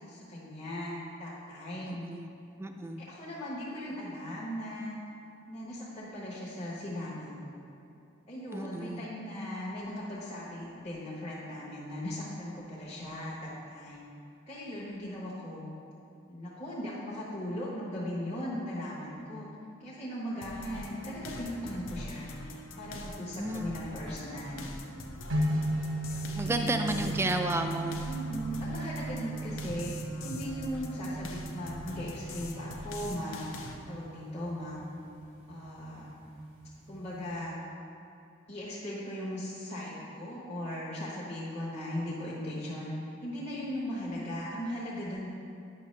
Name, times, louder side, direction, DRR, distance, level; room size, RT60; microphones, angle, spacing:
voice 1, 0.1-2.1 3.0-5.0 5.5-7.7 8.3-14.1 14.5-15.7 16.3-19.5 19.8-22.3 22.8-24.7 25.3-25.5 26.4-26.9 28.1-29.9 30.2-33.5 33.8-34.8 35.5-36.1 36.9-37.6 38.5-42.9 43.2-45.3, equal, 35° left, -8 dB, 1.0 m, -38 dB
voice 2, 1.8-2.3 2.6-3.0 8.5-9.1 23.3-23.7 26.3-28.0, right 1 dB, 15° right, 5 dB, 0.3 m, -32 dB
sound 1, 20.4-33.8, left 2 dB, 75° left, 0.7 m, -43 dB
sound 2, 25.3-37.4, right 1 dB, 90° right, 1.3 m, -37 dB
9.6 x 5.7 x 3.2 m, 2.7 s
head